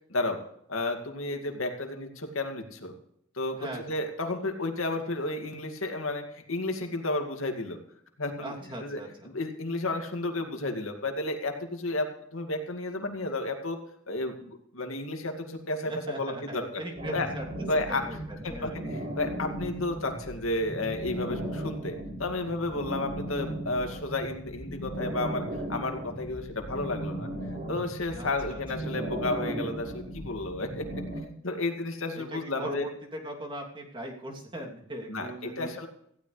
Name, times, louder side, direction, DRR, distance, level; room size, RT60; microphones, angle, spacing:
voice 1, 0.7-2.9 3.3-7.8 8.2-8.5 8.8-13.8 14.1-15.9 16.2-16.8 17.1-17.3 17.7-18.0 18.4-25.4 25.7-27.3 27.7-30.9 31.4-32.9 35.1-35.9, left 2 dB, 85° left, 4 dB, 2.3 m, -32 dB
voice 2, 8.4-9.3 15.8-17.5 17.9-18.8 28.1-28.6 32.1-35.7, equal, 25° right, 0 dB, 2.9 m, -39 dB
sound 1, 16.9-31.2, right 1 dB, 45° right, 5.3 m, -37 dB
18.0 x 15.5 x 3.3 m, 0.70 s
head